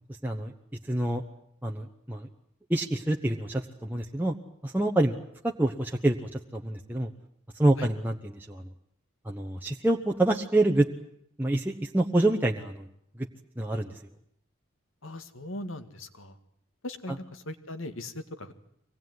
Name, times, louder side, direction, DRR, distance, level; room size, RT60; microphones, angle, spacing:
voice 1, 0.2-0.5 0.9-1.2 1.6-2.3 2.7-4.3 4.6-5.2 5.4-7.1 7.5-8.6 9.2-10.9 11.4-12.9 13.2-13.3 13.6-13.9 17.1-17.2, right 1 dB, 10° right, 1 dB, 1.1 m, -27 dB
voice 2, 15.0-16.3 16.8-18.5, left 1 dB, 75° left, 9 dB, 2.0 m, -39 dB
24.5 x 19.0 x 9.5 m, 0.73 s
head